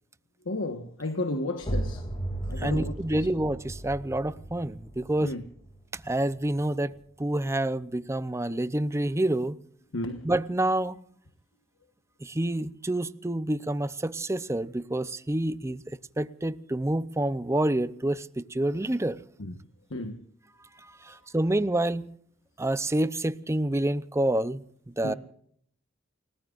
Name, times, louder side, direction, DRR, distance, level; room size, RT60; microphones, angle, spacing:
voice 1, 0.5-2.0 2.5-3.3 5.2-5.4 9.9-10.2 19.4-19.5 19.9-20.2 25.0-25.2, left 2 dB, 75° left, 1.3 m, -33 dB
sound 1, 1.6-7.1, right 1 dB, 30° left, 2.7 m, -36 dB
voice 2, 2.6-5.3 5.9-9.6 10.2-11.0 12.2-19.2 20.8-22.1 22.6-25.1, right 1 dB, 15° right, 0.7 m, -28 dB
29.5 x 19.0 x 2.5 m
head